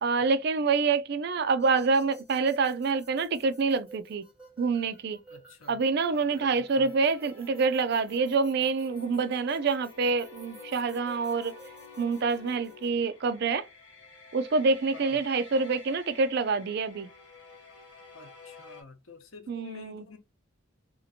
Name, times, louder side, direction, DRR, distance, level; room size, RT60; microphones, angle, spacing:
voice 1, 0.0-4.2 4.6-5.2 5.7-11.5 12.0-13.7 14.3-17.1 19.5-20.0, right 4 dB, 55° right, 0.4 m, -26 dB
sound 1, 1.6-12.9, right 3 dB, 5° right, 1.7 m, -53 dB
voice 2, 5.3-5.8 6.1-6.9 14.9-15.2 18.1-20.2, left 3 dB, 85° left, 0.8 m, -48 dB
sound 2, 5.9-18.8, left 4 dB, 60° left, 1.1 m, -51 dB
2.8 x 2.4 x 2.6 m
head